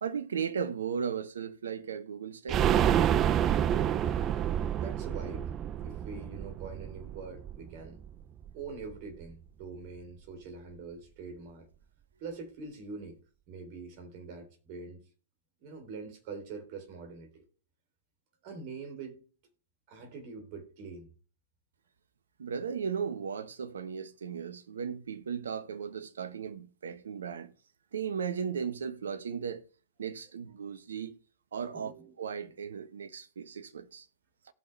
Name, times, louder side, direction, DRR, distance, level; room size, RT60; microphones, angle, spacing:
voice 1, 0.0-2.6 22.4-27.5 27.9-29.6 30.0-31.1 31.5-31.9 32.2-34.0, right 7 dB, 70° right, 1.2 m, -36 dB
sound 1, 2.5-8.1 8.4-8.5 8.8-8.9, right 10 dB, 30° right, 0.5 m, -28 dB
voice 2, 4.8-5.5 5.8-8.0 8.5-11.7 12.2-13.2 13.5-15.0 15.6-17.4 18.4-19.2 19.9-21.1 31.7-32.2, right 4 dB, 45° right, 3.3 m, -44 dB
17.5 x 5.9 x 3.3 m
figure-of-eight pair, 110°, 0 cm